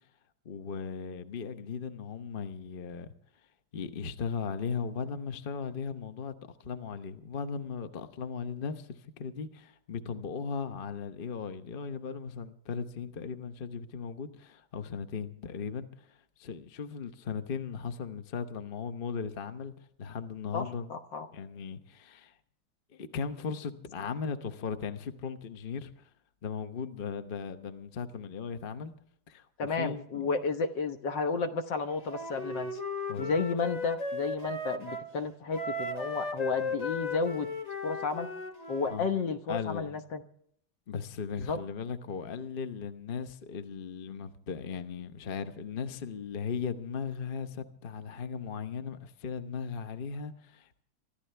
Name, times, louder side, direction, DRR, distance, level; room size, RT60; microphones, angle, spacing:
voice 1, 0.4-3.1 3.7-6.3 6.6-19.7 20.0-20.9 21.3-22.4 22.9-26.1 26.4-28.9 29.3-30.4 33.1-33.3 38.9-39.1 39.5-39.9 40.9-50.8, left 6 dB, 40° left, 0.8 m, -37 dB
voice 2, 20.5-21.3 29.6-32.8 33.2-37.5 37.8-38.3 38.7-40.2 41.5-41.6, left 4 dB, 65° left, 1.7 m, -32 dB
Wind instrument woodwind instrument, 32.1-35.1 35.5-39.0, left 2 dB, 20° left, 1.3 m, -36 dB
25.0 x 13.5 x 3.4 m
omnidirectional pair, 2.2 m